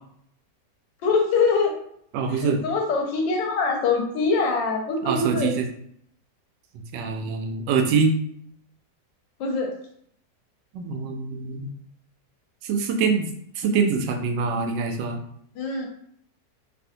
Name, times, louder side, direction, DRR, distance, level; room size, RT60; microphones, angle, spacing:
voice 1, 1.0-1.7 2.3-5.5 9.4-9.7 15.6-15.9, left 4 dB, 90° left, 2 dB, 1.4 m, -23 dB
voice 2, 2.1-2.6 5.1-5.7 6.9-8.1 10.7-11.7 12.6-13.3 13.6-15.2, right 5 dB, 85° right, 4 dB, 1.2 m, -24 dB
3.2 x 2.7 x 2.7 m, 0.67 s
omnidirectional pair, 1.9 m